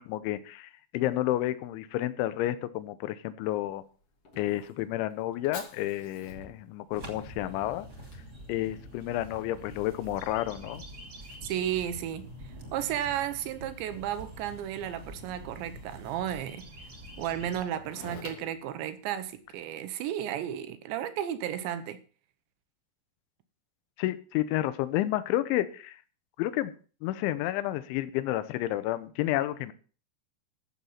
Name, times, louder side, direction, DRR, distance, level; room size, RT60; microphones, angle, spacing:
voice 1, 0.0-3.8 4.4-7.9 8.5-10.8 24.0-26.0 26.4-26.8 27.0-29.7, left 14 dB, 80° left, 3.1 m, -30 dB
Fire, 3.4-19.6, left 3 dB, 50° left, 1.7 m, -52 dB
sound 1, 6.9-17.6, equal, 25° right, 2.3 m, -46 dB
voice 2, 11.4-12.3 12.7-16.6 17.2-22.0, right 10 dB, 75° right, 3.0 m, -33 dB
14.5 x 7.3 x 5.7 m
omnidirectional pair, 5.7 m